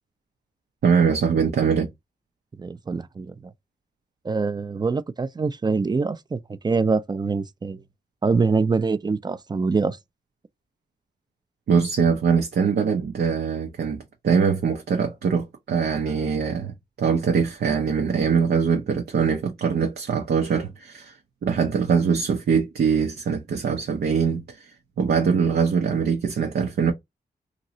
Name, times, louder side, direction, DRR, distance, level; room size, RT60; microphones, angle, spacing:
voice 1, 0.8-1.9 11.7-16.7 17.0-26.9, right 6 dB, 80° right, 0.7 m, -22 dB
voice 2, 2.6-3.3 4.2-6.4 6.6-7.8 8.2-10.0, right 4 dB, 25° right, 0.4 m, -24 dB
3.0 x 2.7 x 2.7 m
wide cardioid pair, 100°, 16 cm